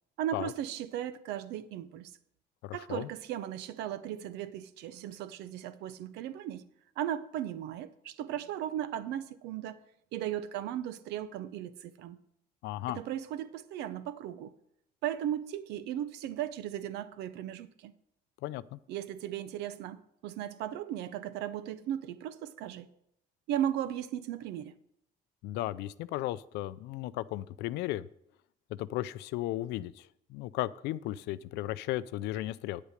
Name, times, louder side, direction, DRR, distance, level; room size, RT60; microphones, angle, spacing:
voice 1, 0.2-2.1 2.7-6.6 7.0-9.8 10.1-12.2 12.9-14.5 15.0-17.9 18.9-22.9 23.5-24.7, right 11 dB, 90° right, 0.7 m, -36 dB
voice 2, 2.6-3.1 12.6-13.0 18.4-18.8 25.4-28.1 28.8-32.8, left 15 dB, 85° left, 0.5 m, -35 dB
9.6 x 8.2 x 5.1 m
cardioid pair, 110°, 17 cm